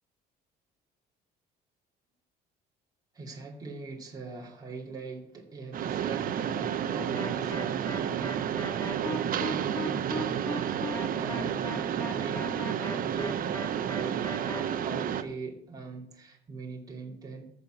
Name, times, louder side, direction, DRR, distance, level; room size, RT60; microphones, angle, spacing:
voice 1, 3.1-12.4 12.9-17.5, right 3 dB, 20° right, -2 dB, 2.5 m, -41 dB
Mechanisms, 5.7-15.2, right 9 dB, 55° right, 0.9 m, -31 dB
sound 1, 7.2-14.6, left 1 dB, 20° left, 2.0 m, -38 dB
14.0 x 5.1 x 7.4 m, 0.76 s
cardioid pair, 110°, 17 cm